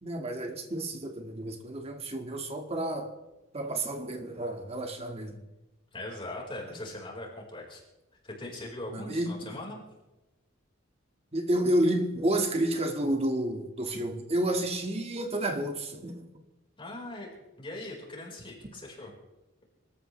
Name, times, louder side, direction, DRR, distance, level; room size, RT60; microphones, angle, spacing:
voice 1, 0.0-3.1 3.5-5.4 6.7-6.8 8.9-9.6 11.3-16.3, right 1 dB, 30° right, 1.9 m, -30 dB
voice 2, 5.9-7.8 8.2-9.8 16.8-17.3 17.6-19.1, left 1 dB, 25° left, 4.8 m, -40 dB
26.0 x 13.5 x 3.3 m
head